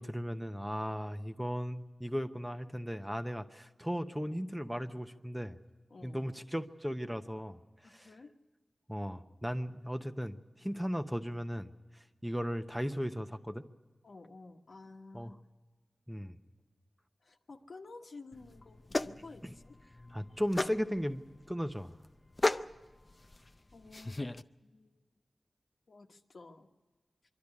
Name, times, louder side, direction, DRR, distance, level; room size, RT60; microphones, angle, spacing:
voice 1, 0.0-5.6 6.0-8.1 8.9-13.6 15.1-15.4 16.1-16.4 19.4-19.5 20.1-22.0, equal, 5° right, 7 dB, 0.9 m, -37 dB
voice 2, 5.9-6.2 7.8-8.3 14.0-15.3 17.2-19.8 23.7-24.3 24.6-25.0 25.9-26.7, left 3 dB, 70° left, 3 dB, 1.3 m, -52 dB
sound 1, 18.3-24.4, left 2 dB, 30° left, 0.5 m, -37 dB
25.0 x 12.0 x 9.8 m, 1.3 s
wide cardioid pair, 85°, 0 cm